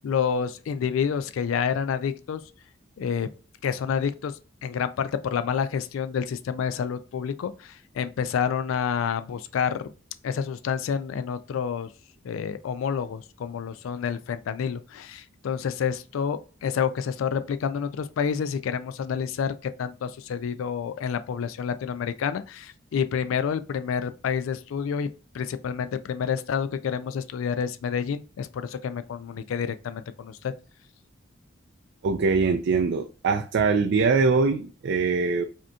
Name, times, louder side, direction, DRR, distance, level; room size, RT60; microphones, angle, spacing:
voice 1, 0.0-2.4 3.0-3.3 3.6-4.3 4.6-9.9 10.2-11.9 12.2-25.1 25.3-30.5, left 7 dB, 80° left, 0.3 m, -28 dB
voice 2, 32.0-35.4, right 4 dB, 60° right, 0.4 m, -23 dB
4.9 x 2.8 x 2.2 m
head